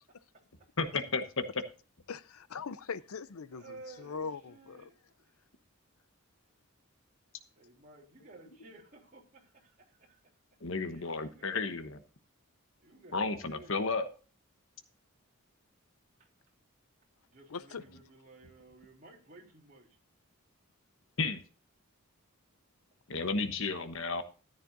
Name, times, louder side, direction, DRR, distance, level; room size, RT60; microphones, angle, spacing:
voice 1, 2.1-4.9 17.5-17.8, left 5 dB, 80° left, 0.6 m, -41 dB
voice 2, 3.5-5.3 7.6-10.2 10.8-11.6 12.8-13.9 17.3-19.9 23.9-24.2, right 2 dB, 35° right, 3.6 m, -55 dB
voice 3, 10.6-12.0 13.1-14.1 21.2-21.4 23.1-24.2, left 3 dB, 60° left, 1.1 m, -32 dB
14.0 x 10.0 x 2.7 m
head